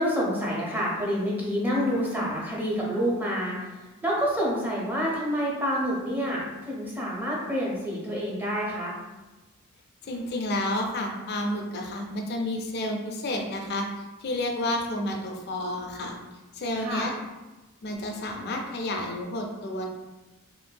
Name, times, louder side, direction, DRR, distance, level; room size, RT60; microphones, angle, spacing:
voice 1, 0.0-8.9 16.8-17.1, equal, 10° right, -4 dB, 0.5 m, -28 dB
voice 2, 10.0-16.2 16.5-17.1 17.8-19.9, left 1 dB, 50° left, 2 dB, 0.4 m, -30 dB
3.0 x 2.5 x 2.2 m, 1.1 s
head